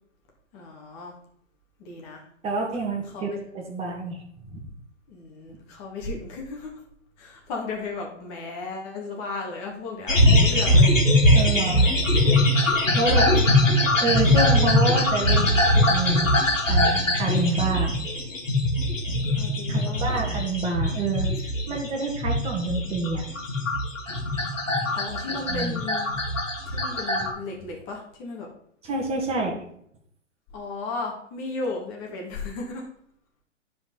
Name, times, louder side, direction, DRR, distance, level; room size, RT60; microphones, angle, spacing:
voice 1, 0.5-1.2 1.8-2.2 3.1-3.4 5.1-6.7 7.2-10.9 13.2-13.7 17.2-17.5 19.3-20.3 24.9-26.1 26.7-28.5 30.5-32.9, left 3 dB, 30° left, 0 dB, 2.3 m, -35 dB
voice 2, 2.4-3.3 3.5-4.2 4.5-4.6 11.3-11.9 12.9-13.3 14.0-16.3 16.7-17.9 19.7-23.2 25.5-25.8 28.8-29.6, right 3 dB, 15° right, -1 dB, 2.0 m, -28 dB
sound 1, 10.1-27.3, left 1 dB, 85° left, 2.5 m, -21 dB
11.0 x 4.9 x 4.0 m, 0.67 s
hypercardioid pair, 125°, 37 cm